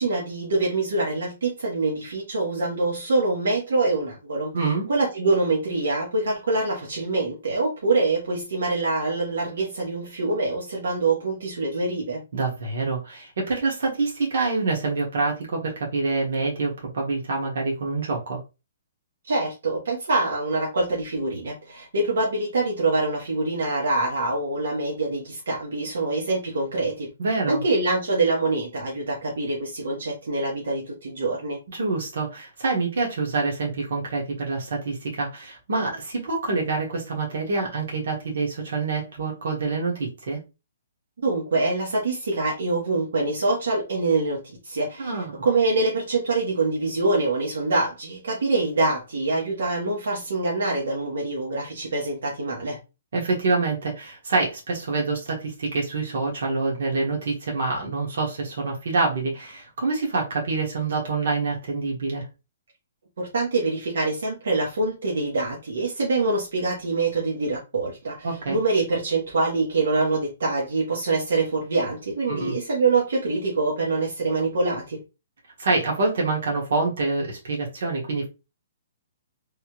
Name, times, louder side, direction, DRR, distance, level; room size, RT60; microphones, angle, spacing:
voice 1, 0.0-12.2 19.3-27.1 27.5-31.6 41.2-52.8 63.2-75.0, right 3 dB, 85° right, 1.1 m, -25 dB
voice 2, 4.5-4.9 12.3-18.4 27.2-27.6 31.7-40.4 45.0-45.4 53.1-62.3 68.2-68.6 72.3-72.5 75.6-78.3, right 3 dB, 65° right, 1.4 m, -26 dB
3.4 x 2.2 x 3.0 m
hypercardioid pair, 170°, 0 cm